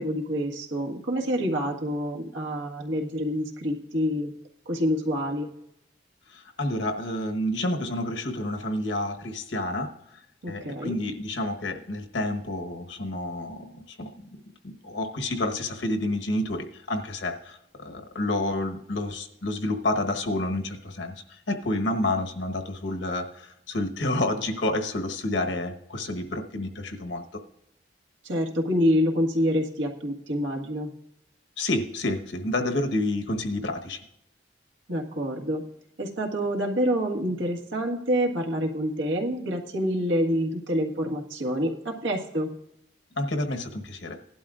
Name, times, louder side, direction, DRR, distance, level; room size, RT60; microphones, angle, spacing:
voice 1, 0.0-4.3 4.6-5.5 10.4-11.0 28.2-30.9 34.9-35.6 36.0-42.5, equal, 80° right, 0 dB, 1.6 m, -27 dB
voice 2, 6.3-10.2 10.5-14.3 14.6-27.2 31.6-34.0 43.2-44.2, left 1 dB, 70° left, 5 dB, 1.2 m, -29 dB
17.5 x 11.5 x 2.5 m, 0.81 s
head